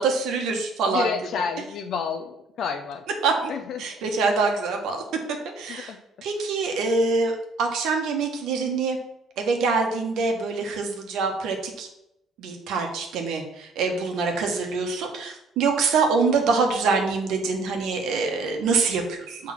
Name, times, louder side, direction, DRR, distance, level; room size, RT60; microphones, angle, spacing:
voice 1, 0.0-1.1 3.2-3.5 3.8-5.0 5.6-5.9 6.2-9.0 9.4-11.9 12.4-19.5, right 4 dB, 85° right, 3 dB, 1.3 m, -25 dB
voice 2, 0.9-3.0 3.5-3.9 5.9-6.0, left 6 dB, 55° left, 6 dB, 0.5 m, -30 dB
6.3 x 3.6 x 5.9 m, 0.83 s
cardioid pair, 170°, 0 cm